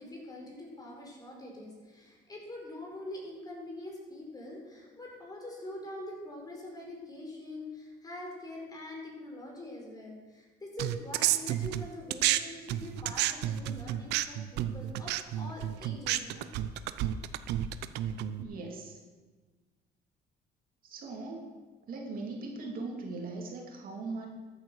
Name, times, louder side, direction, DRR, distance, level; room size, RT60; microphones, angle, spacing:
voice 1, 0.0-16.5, left 1 dB, 25° left, -1 dB, 4.8 m, -44 dB
sound 1, 10.8-12.4 12.7-18.4, right 13 dB, 85° right, 0.7 m, -31 dB
voice 2, 18.4-19.0 20.8-21.6 21.9-24.3, right 3 dB, 55° right, 0 dB, 2.8 m, -40 dB
13.5 x 8.7 x 6.4 m, 1.3 s
cardioid pair, 110°, 17 cm